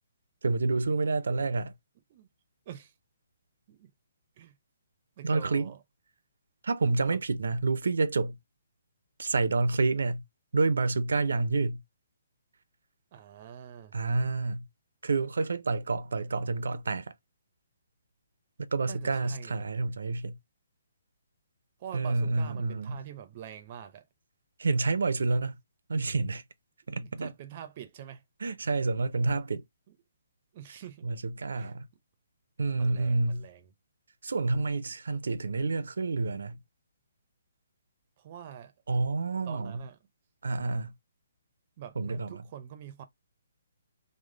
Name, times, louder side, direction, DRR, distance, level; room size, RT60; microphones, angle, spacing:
voice 1, 0.4-1.7 5.2-5.7 6.6-8.4 9.2-10.2 10.5-11.8 13.9-14.7 15.0-17.1 18.7-20.4 21.9-23.0 24.6-25.6 25.9-26.4 26.9-27.3 28.4-29.6 31.0-31.9 32.6-33.5 34.2-36.6 38.9-39.8 40.4-40.9 42.0-42.4, right 3 dB, 90° right, 0.5 m, -28 dB
voice 2, 5.2-5.8 7.1-7.2 13.1-13.9 18.8-19.6 21.8-24.0 26.9-28.2 30.5-31.1 31.5-31.7 32.8-33.7 38.2-38.7 39.5-40.0 41.8-43.0, right 10 dB, 25° right, 0.4 m, -45 dB
3.2 x 2.0 x 3.7 m
hypercardioid pair, 180°, 0 cm